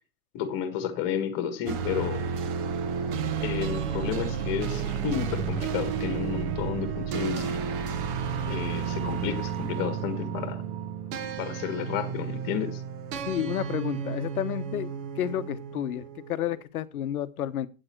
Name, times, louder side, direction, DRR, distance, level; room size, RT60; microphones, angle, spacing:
voice 1, 0.3-2.3 3.4-7.6 8.5-10.6 11.4-12.8, left 9 dB, 25° left, 10 dB, 1.4 m, -31 dB
sound 1, 1.7-16.6, right 6 dB, 35° right, 1.2 m, -32 dB
voice 2, 13.3-14.9 15.2-17.7, left 11 dB, 70° left, 13 dB, 1.1 m, -31 dB
9.0 x 8.4 x 4.5 m, 0.33 s
hypercardioid pair, 165°, 45 cm